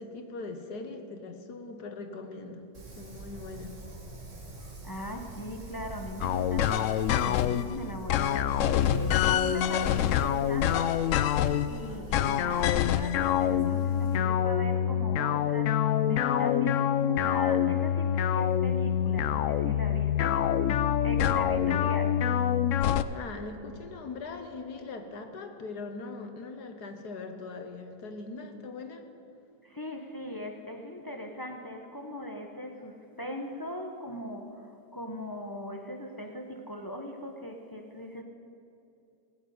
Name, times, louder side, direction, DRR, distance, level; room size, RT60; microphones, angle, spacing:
voice 1, 0.0-2.7 2.9-3.7 23.1-29.1, left 3 dB, 65° left, 6 dB, 1.7 m, -41 dB
Wind, 2.7-14.2, right 3 dB, 45° right, 2.4 m, -46 dB
voice 2, 4.6-11.0 11.7-20.7 21.0-22.3 29.6-38.2, equal, 15° left, 3 dB, 0.8 m, -40 dB
sound 1, 6.2-7.7 8.1-11.7 12.1-23.0, left 10 dB, 85° left, 0.6 m, -26 dB
18.5 x 7.3 x 9.4 m, 2.7 s
omnidirectional pair, 1.9 m